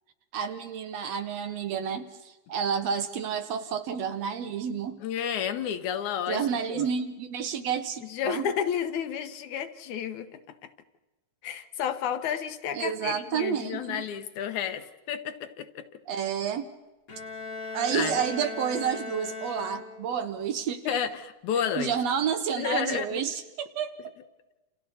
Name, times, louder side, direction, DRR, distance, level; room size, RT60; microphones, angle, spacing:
voice 1, 0.3-5.0 6.3-8.5 12.7-14.0 16.1-16.7 17.7-21.0 21.5-24.2, right 7 dB, 70° right, 9 dB, 1.8 m, -30 dB
voice 2, 5.0-6.9 8.1-10.7 11.4-15.9 17.6-18.2 20.9-21.9 22.6-23.2, left 8 dB, 75° left, 9 dB, 2.4 m, -31 dB
Bowed string instrument, 17.1-20.3, left 3 dB, 35° left, 1.5 m, -38 dB
29.0 x 28.5 x 4.2 m, 1.1 s
omnidirectional pair, 3.5 m